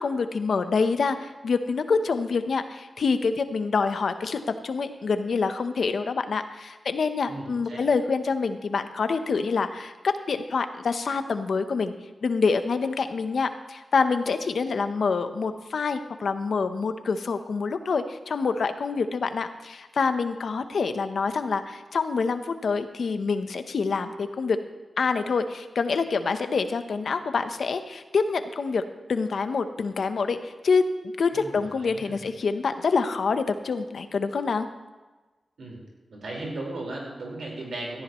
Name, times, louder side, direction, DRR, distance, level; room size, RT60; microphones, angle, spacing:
voice 1, 0.0-9.9 10.3-11.9 12.2-24.6 25.0-28.8 29.1-34.7, left 4 dB, 80° left, 9 dB, 0.9 m, -26 dB
voice 2, 7.3-7.8 31.3-32.2 35.6-35.8 36.1-38.0, right 2 dB, 85° right, -2 dB, 4.7 m, -36 dB
17.5 x 13.5 x 3.1 m, 1.2 s
cardioid pair, 70°, 0 cm